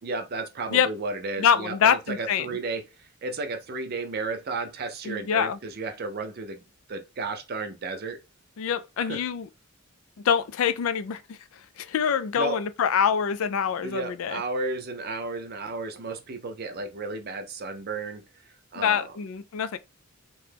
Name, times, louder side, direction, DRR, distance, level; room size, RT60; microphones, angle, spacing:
voice 1, 0.0-6.6 6.9-8.2 9.0-9.2 12.4-12.6 13.8-18.2 18.7-19.1, right 3 dB, 45° right, 0.5 m, -33 dB
voice 2, 1.4-2.5 5.0-5.6 8.6-9.5 10.2-11.4 11.8-14.4 18.8-19.8, left 7 dB, 70° left, 0.3 m, -25 dB
2.9 x 2.2 x 3.3 m
head